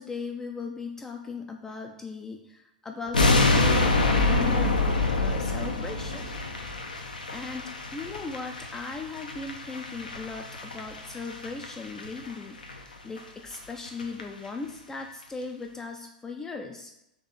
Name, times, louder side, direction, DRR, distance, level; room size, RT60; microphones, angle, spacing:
voice 1, 0.0-6.3 7.3-16.9, left 4 dB, 10° left, 3 dB, 0.3 m, -38 dB
sound 1, 3.1-12.3 12.6-12.8 13.2-13.3 13.5-13.6 13.9-14.2 14.5-14.6, left 2 dB, 80° left, 0.6 m, -26 dB
3.7 x 3.2 x 3.9 m, 0.82 s
figure-of-eight pair, 100°, 5 cm